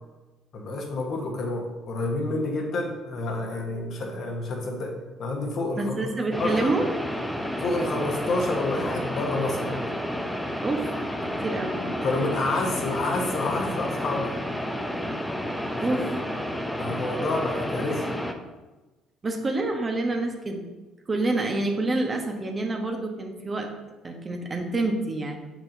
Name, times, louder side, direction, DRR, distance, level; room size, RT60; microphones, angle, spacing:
voice 1, 0.5-4.9 5.2-6.1 6.4-6.7 7.6-9.8 12.0-14.3 16.8-18.1, left 2 dB, 50° left, 1 dB, 1.3 m, -29 dB
voice 2, 5.8-6.9 10.6-10.9 11.2-11.9 15.8-16.1 19.2-20.6 21.1-23.7 24.0-25.4, right 2 dB, 30° right, 2 dB, 1.1 m, -27 dB
sound 1, 6.3-18.3, equal, 5° left, 0.7 m, -31 dB
7.1 x 6.1 x 2.7 m, 1.2 s
figure-of-eight pair, 55°, 0 cm